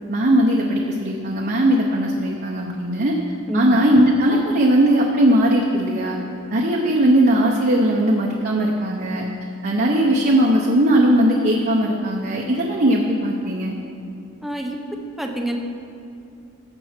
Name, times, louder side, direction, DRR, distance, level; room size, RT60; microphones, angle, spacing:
voice 1, 0.1-3.1 3.5-6.2 6.5-9.2 9.6-13.7, right 1 dB, 45° right, -2 dB, 0.9 m, -18 dB
voice 2, 3.5-3.8 14.4-14.8 15.2-15.6, right 1 dB, ahead, 1 dB, 0.8 m, -26 dB
15.0 x 7.1 x 4.4 m, 2.5 s
head